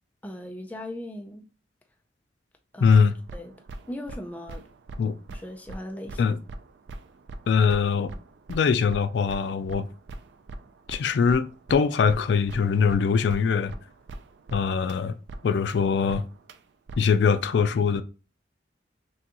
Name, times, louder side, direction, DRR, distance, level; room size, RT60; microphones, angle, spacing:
voice 1, 0.2-1.4 2.7-3.0 3.3-3.5 3.9-4.6 5.3-6.2, left 1 dB, 10° left, 0.4 m, -38 dB
voice 2, 2.8-3.1 5.0-5.2 6.2-6.4 7.5-8.1 8.5-9.9 10.9-13.7 14.5-15.2 15.4-16.2 17.0-18.0, left 6 dB, 75° left, 0.3 m, -22 dB
sound 1, 2.8-15.0 15.3-15.8 16.1-16.6 16.9-17.2, right 2 dB, 80° right, 0.4 m, -42 dB
6.1 x 2.3 x 2.9 m
head